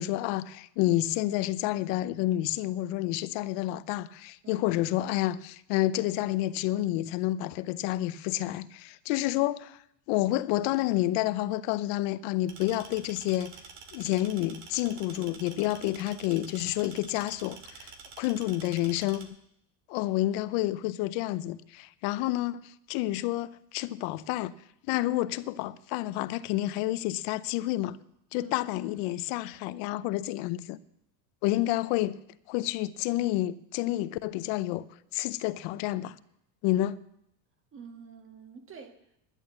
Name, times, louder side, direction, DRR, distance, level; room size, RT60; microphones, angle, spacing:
voice 1, 0.0-9.8 10.1-13.5 13.9-17.9 18.2-19.3 19.9-24.5 24.9-28.0 28.3-30.8 31.4-32.2 32.5-34.9 35.1-36.2 36.6-37.0, left 15 dB, 60° left, 0.7 m, -29 dB
sound 1, 12.5-19.2, right 6 dB, 55° right, 2.1 m, -48 dB
voice 2, 37.7-39.2, right 6 dB, 25° right, 1.5 m, -48 dB
11.0 x 11.0 x 7.2 m
cardioid pair, 160°, 49 cm